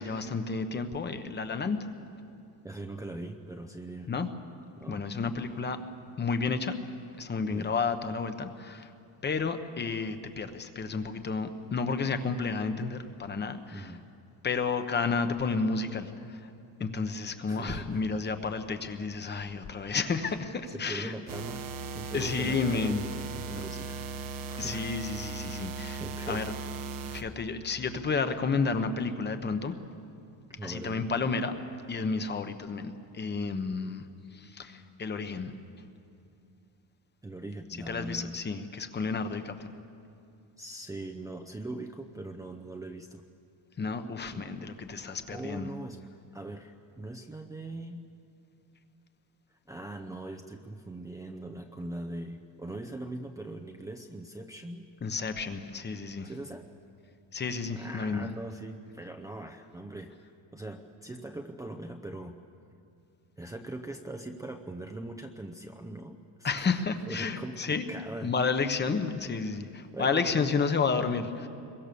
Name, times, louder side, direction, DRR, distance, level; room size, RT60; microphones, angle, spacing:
voice 1, 0.0-1.8 4.1-4.3 4.9-5.8 6.2-6.8 7.2-8.9 9.2-13.9 14.4-16.5 16.8-21.1 22.1-23.0 24.6-26.5 27.1-29.7 30.6-31.6 31.9-34.0 34.3-35.5 37.9-39.7 43.8-45.7 55.0-56.3 57.3-58.3 66.4-67.9 68.2-71.5, left 4 dB, 25° left, 8 dB, 1.1 m, -31 dB
voice 2, 2.6-4.1 4.8-5.0 7.4-7.7 13.7-14.0 17.5-18.2 20.2-20.4 20.7-21.6 21.9-24.0 24.5-24.8 25.9-26.4 30.5-31.1 37.2-38.4 40.6-43.2 44.3-44.5 45.3-46.0 46.3-48.0 49.7-54.9 56.2-56.7 57.8-60.2 60.5-62.4 63.4-66.2 66.6-66.8 67.1-68.3 69.9-70.5, right 2 dB, 10° right, 4 dB, 0.6 m, -41 dB
sound 1, 21.3-27.2, right 4 dB, 50° right, 1.2 m, -38 dB
26.0 x 22.5 x 6.9 m, 2.5 s
cardioid pair, 165°, 42 cm